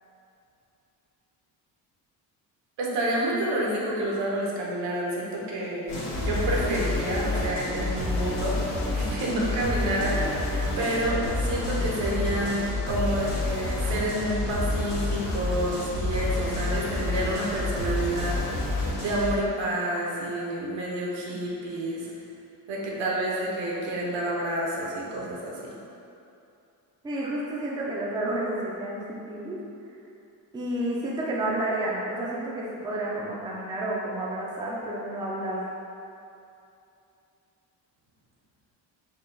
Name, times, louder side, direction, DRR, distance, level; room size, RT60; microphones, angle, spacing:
voice 1, 2.8-18.4 19.0-22.1 22.7-25.7, right 1 dB, 80° right, -3 dB, 1.0 m, -29 dB
sound 1, 5.9-19.3, left 2 dB, 85° left, 1.2 m, -29 dB
voice 2, 27.0-29.6 30.5-35.6, right 1 dB, 10° right, -4 dB, 0.3 m, -30 dB
4.6 x 2.3 x 3.9 m, 2.7 s
cardioid pair, 140°, 44 cm